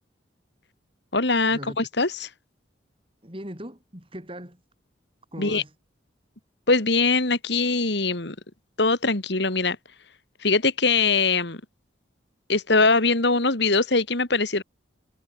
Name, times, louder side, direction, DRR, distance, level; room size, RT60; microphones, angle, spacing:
voice 1, 1.1-2.1 5.4-5.6 6.7-8.4 8.8-9.8 10.4-11.6 12.5-14.6, left 3 dB, 60° left, 2.4 m, -22 dB
voice 2, 3.2-4.6 5.3-5.8, equal, 25° right, 5.5 m, -39 dB
head